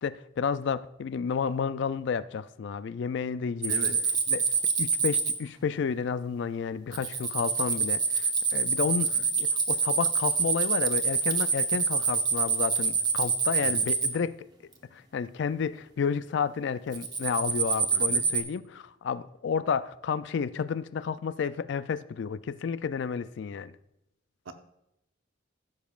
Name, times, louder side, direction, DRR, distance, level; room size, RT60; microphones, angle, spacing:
voice 1, 0.0-3.7 4.3-4.5 4.8-14.5 14.9-23.7, left 6 dB, 60° left, 0.3 m, -31 dB
sound 1, 3.6-5.3 6.9-14.1 16.9-18.4, right 5 dB, 20° right, 0.8 m, -26 dB
voice 2, 17.9-18.2 24.5-24.6, right 3 dB, 75° right, 0.8 m, -39 dB
15.0 x 7.2 x 2.4 m
head